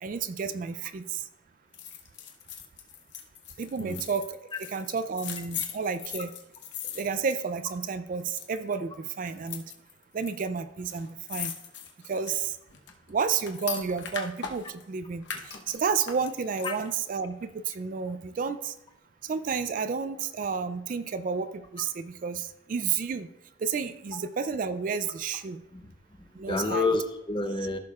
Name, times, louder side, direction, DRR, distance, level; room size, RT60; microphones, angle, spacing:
voice 1, 0.0-1.3 3.6-6.3 6.9-9.6 10.1-11.5 12.1-12.6 13.1-18.7 19.2-23.3 23.6-25.6 26.4-26.9, right 5 dB, 40° right, 12 dB, 0.3 m, -31 dB
sound 1, 1.7-7.9 8.2-8.7 9.3-10.3 10.6-10.7 10.9-14.8 15.2-17.0 17.4-17.5, left 8 dB, 55° left, 0.9 m, -40 dB
voice 2, 26.4-27.8, left 3 dB, 20° left, 6 dB, 0.6 m, -29 dB
15.0 x 6.5 x 2.4 m, 0.89 s
head